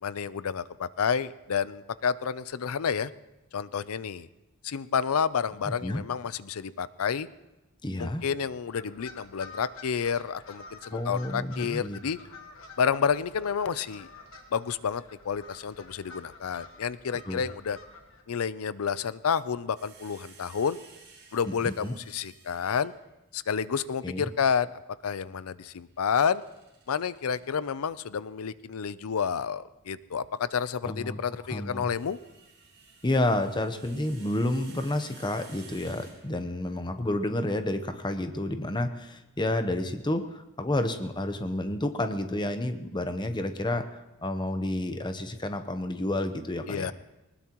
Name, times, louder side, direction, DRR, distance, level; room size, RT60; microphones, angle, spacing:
voice 1, 0.0-3.1 3.5-4.3 4.6-7.3 8.0-12.2 12.8-14.1 14.5-17.8 18.3-20.8 21.3-22.9 23.3-26.4 26.9-32.2 46.7-46.9, left 6 dB, 80° left, 16 dB, 0.5 m, -30 dB
voice 2, 5.7-6.0 7.8-8.2 10.9-12.0 17.3-17.4 21.5-21.9 24.0-24.3 30.8-31.2 31.5-31.9 33.0-46.9, left 1 dB, 20° left, 8 dB, 0.8 m, -30 dB
sound 1, 8.7-18.2, left 4 dB, 65° left, 1.6 m, -49 dB
sound 2, 19.8-23.1 25.9-27.4 29.2-29.4 31.5-36.6, right 5 dB, 55° right, 7.0 m, -54 dB
20.0 x 19.5 x 3.0 m, 1.0 s
head